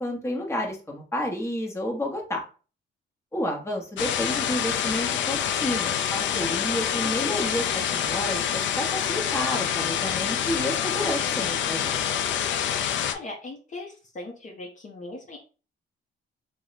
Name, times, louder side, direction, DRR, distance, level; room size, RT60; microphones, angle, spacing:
voice 1, 0.0-2.4 3.3-12.0, left 1 dB, 15° left, 1 dB, 1.0 m, -30 dB
sound 1, 4.0-13.1, left 9 dB, 70° left, 0.4 m, -26 dB
voice 2, 6.7-7.2 13.1-15.4, left 2 dB, 40° left, 0 dB, 0.7 m, -40 dB
2.9 x 2.1 x 3.9 m, 0.36 s
cardioid pair, 90°, 20 cm